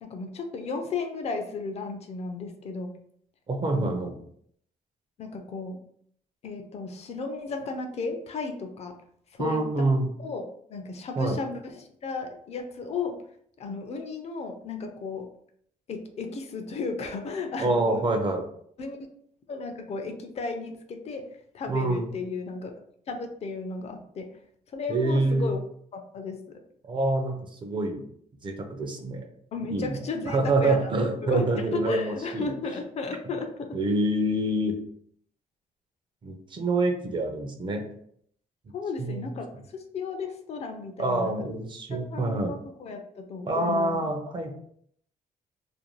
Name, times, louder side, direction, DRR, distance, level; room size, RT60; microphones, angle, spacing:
voice 1, 0.0-2.9 3.7-3.9 5.2-5.8 6.4-8.9 9.3-9.9 10.2-10.4 10.7-13.2 13.6-15.3 15.9-18.0 18.8-19.0 19.5-21.3 21.5-22.7 23.1-24.3 24.7-25.6 25.9-26.6 29.5-31.0 31.2-33.8 38.7-41.4 42.1-43.9, left 4 dB, 45° left, 5 dB, 0.4 m, -34 dB
voice 2, 3.5-4.1 9.4-10.1 11.2-11.4 17.6-18.4 21.7-22.1 24.9-25.5 26.8-28.1 28.4-29.3 29.7-30.0 30.3-32.5 33.7-34.8 36.2-37.9 39.0-39.3 41.0-42.5 43.5-44.5, right 2 dB, 35° right, 4 dB, 0.5 m, -26 dB
2.5 x 2.2 x 3.0 m, 0.66 s
cardioid pair, 135°, 15 cm